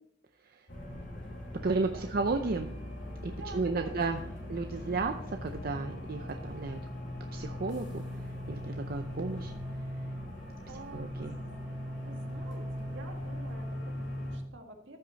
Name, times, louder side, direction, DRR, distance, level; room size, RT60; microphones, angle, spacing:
sound 1, 0.7-14.4, left 1 dB, 70° left, 2.7 m, -40 dB
voice 1, 1.5-2.7 3.2-4.2 4.5-5.1 5.4-6.8 7.3-8.0 8.5-9.5 10.9-11.3, right 3 dB, 55° right, 5 dB, 0.6 m, -33 dB
voice 2, 3.3-4.3 10.7-11.6 11.9-15.0, right 2 dB, 75° right, 3 dB, 1.7 m, -49 dB
14.0 x 6.0 x 4.1 m, 0.70 s
head